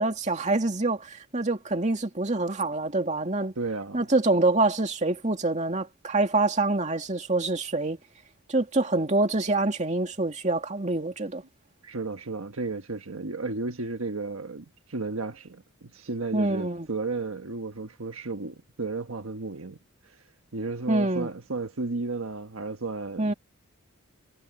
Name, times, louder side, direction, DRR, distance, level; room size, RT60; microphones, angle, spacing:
voice 1, 0.0-3.5 3.9-8.0 8.5-11.4 16.3-16.9 20.9-21.3 23.2-23.3, right 2 dB, 35° right, 2.3 m, -26 dB
voice 2, 3.6-4.0 11.8-19.8 20.0-20.2 20.5-23.3, right 3 dB, 75° right, 1.3 m, -33 dB
head